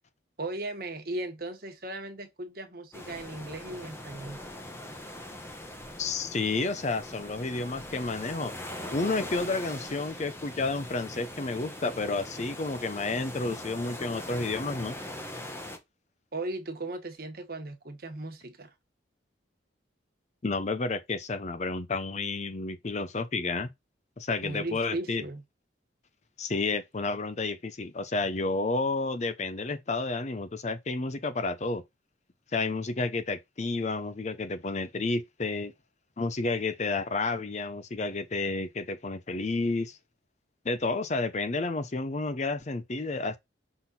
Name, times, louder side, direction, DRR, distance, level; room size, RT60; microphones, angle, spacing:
voice 1, 0.4-4.4 16.3-18.7 24.4-25.4, right 2 dB, 50° right, 1.4 m, -37 dB
sound 1, 2.9-15.8, left 1 dB, 15° left, 1.0 m, -41 dB
voice 2, 6.0-8.5 8.9-15.0 20.4-23.7 24.2-25.2 26.4-31.8 32.5-35.7 36.2-40.0 40.6-43.4, left 3 dB, 40° left, 0.6 m, -31 dB
6.0 x 3.8 x 4.2 m
head